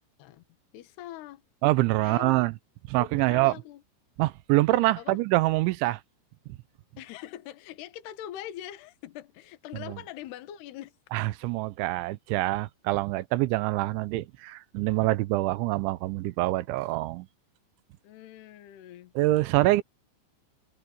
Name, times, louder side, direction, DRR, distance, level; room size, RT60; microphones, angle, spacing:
voice 1, 0.7-1.4 2.0-2.3 3.0-3.8 5.0-5.2 7.0-10.9 18.0-19.1 19.6-19.8, left 12 dB, 65° left, 3.2 m, -42 dB
voice 2, 1.6-2.5 2.9-3.5 4.2-6.0 9.9-10.0 11.1-17.3 19.2-19.8, right 18 dB, 80° right, 2.9 m, -25 dB
omnidirectional pair, 5.7 m